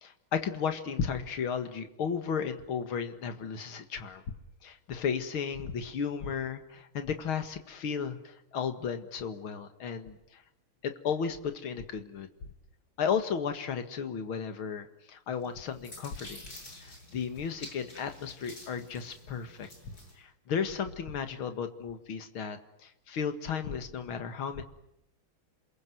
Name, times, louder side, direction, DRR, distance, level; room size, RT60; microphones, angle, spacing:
voice 1, 0.0-4.3 4.6-10.4 10.8-12.3 13.0-16.4 16.8-24.6, left 6 dB, 75° left, 8 dB, 2.7 m, -34 dB
sound 1, 15.4-20.2, left 1 dB, 45° left, 7.8 m, -49 dB
28.5 x 22.0 x 9.5 m, 0.80 s
omnidirectional pair, 2.4 m